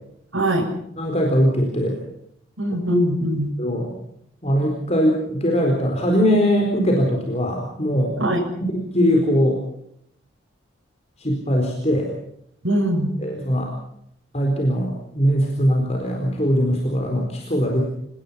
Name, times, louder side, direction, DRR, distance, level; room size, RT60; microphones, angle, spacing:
voice 1, 0.3-0.7 2.6-3.5 8.2-8.4 12.6-13.1, equal, 85° right, 0 dB, 6.6 m, -21 dB
voice 2, 1.0-2.0 3.6-3.9 4.4-8.2 8.7-9.6 11.2-12.1 13.2-13.7 14.3-17.8, equal, 35° left, 1 dB, 4.3 m, -21 dB
28.0 x 19.5 x 5.8 m, 0.71 s
head